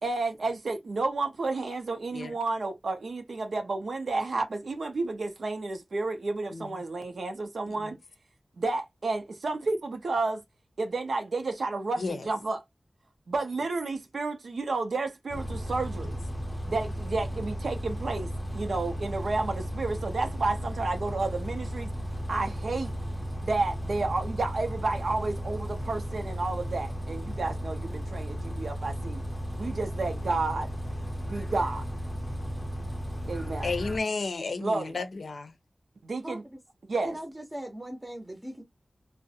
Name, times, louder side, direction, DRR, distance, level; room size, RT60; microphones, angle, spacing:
voice 1, 0.0-8.0 8.6-10.4 10.8-12.6 13.3-16.2 16.7-21.9 22.3-22.9 23.4-29.2 29.6-30.7 31.2-31.8 33.3-33.7 34.6-35.0 36.0-36.4 36.9-37.2, right 3 dB, 85° right, 0.5 m, -31 dB
voice 2, 6.5-6.8 7.7-7.9 12.0-12.3 33.6-35.5, left 3 dB, 85° left, 0.5 m, -33 dB
Bus, 15.3-34.0, equal, 20° left, 0.5 m, -35 dB
voice 3, 36.2-36.6 37.0-38.6, right 1 dB, 20° right, 0.6 m, -39 dB
2.4 x 2.0 x 2.6 m
wide cardioid pair, 75°, 0 cm